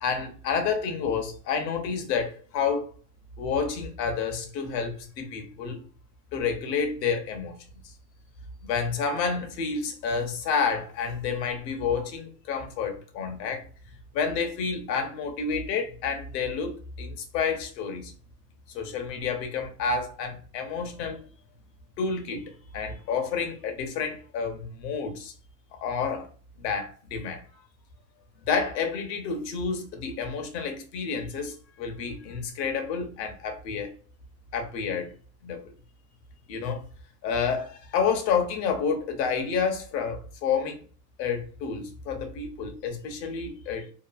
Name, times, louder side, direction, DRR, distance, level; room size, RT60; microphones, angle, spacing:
voice 1, 0.0-2.9 3.4-5.8 6.3-7.6 7.8-7.9 8.6-13.6 14.1-18.1 18.7-21.2 22.0-25.3 25.8-26.3 26.6-27.5 28.5-33.9 34.5-35.1 35.4-35.7 36.5-36.9 37.2-40.8 41.2-43.9, left 5 dB, 85° left, 1.0 m, -29 dB
2.9 x 2.3 x 2.4 m
supercardioid pair, 120°, 48 cm